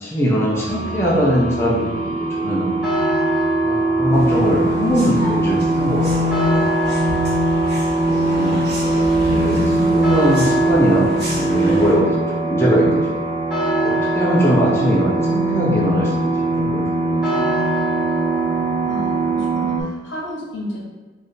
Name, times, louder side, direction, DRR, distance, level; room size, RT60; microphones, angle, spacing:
voice 1, 0.0-2.7 3.6-6.6 8.1-13.2 13.8-17.5, equal, 15° left, -5 dB, 0.6 m, -21 dB
sound 1, 0.5-19.8, right 2 dB, 35° right, 0.4 m, -21 dB
sound 2, 0.7-19.4, right 1 dB, 5° right, 1.2 m, -28 dB
sound 3, 4.1-11.9, equal, 60° right, 1.1 m, -30 dB
voice 2, 18.8-20.8, equal, 75° left, -4 dB, 1.2 m, -32 dB
3.3 x 2.5 x 4.2 m, 1.3 s
head